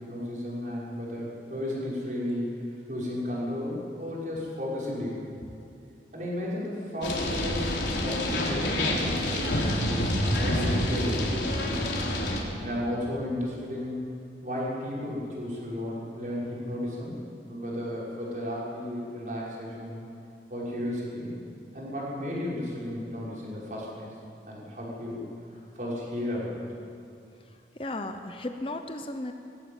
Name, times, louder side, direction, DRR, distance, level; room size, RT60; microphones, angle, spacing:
voice 1, 0.0-2.6 2.9-5.3 6.1-7.7 8.0-12.0 12.6-14.0 14.4-17.2 17.5-20.0 20.5-21.3 21.7-24.1 24.5-25.3 25.7-26.6, left 1 dB, 45° right, -6 dB, 6.0 m, -34 dB
sound 1, 7.0-12.4, left 1 dB, 85° left, 3.8 m, -27 dB
voice 2, 27.7-29.3, left 2 dB, 30° left, 6 dB, 0.9 m, -35 dB
19.5 x 15.0 x 9.1 m, 2.5 s
head